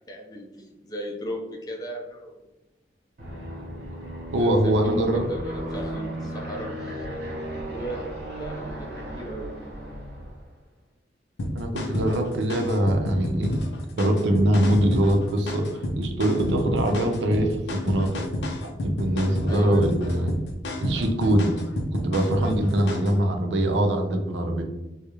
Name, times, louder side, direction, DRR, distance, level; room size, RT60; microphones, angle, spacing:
voice 1, 0.1-2.3 4.3-7.0 7.7-8.0 8.4-9.5 19.5-19.9, equal, 20° left, 0 dB, 0.4 m, -36 dB
Aircraft, 3.2-10.5, right 1 dB, 60° right, 0.8 m, -35 dB
voice 2, 4.3-5.3 11.5-13.6 14.0-15.7 16.0-18.3 18.6-20.4 20.8-21.5 21.9-24.6, right 1 dB, 85° right, 4 dB, 0.4 m, -23 dB
sound 1, 11.4-23.2, left 1 dB, 80° left, 0.4 m, -30 dB
2.3 x 2.0 x 2.9 m, 1.0 s
head